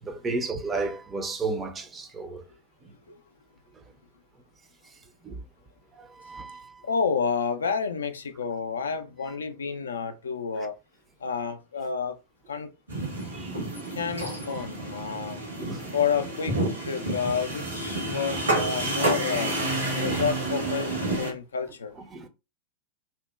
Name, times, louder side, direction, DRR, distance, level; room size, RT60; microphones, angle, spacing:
voice 1, 0.0-2.4 5.2-5.4 6.0-6.8 13.3-14.1 14.5-14.6 15.6-15.9 22.1-22.3, right 3 dB, 20° right, 0.4 m, -33 dB
voice 2, 6.8-10.7 11.2-12.2 12.5-12.7 13.9-15.4 15.9-19.5 20.0-22.0, left 6 dB, 70° left, 0.3 m, -30 dB
sound 1, 12.9-21.3, right 2 dB, 75° right, 1.2 m, -29 dB
2.7 x 2.1 x 2.3 m
figure-of-eight pair, 90°, 0 cm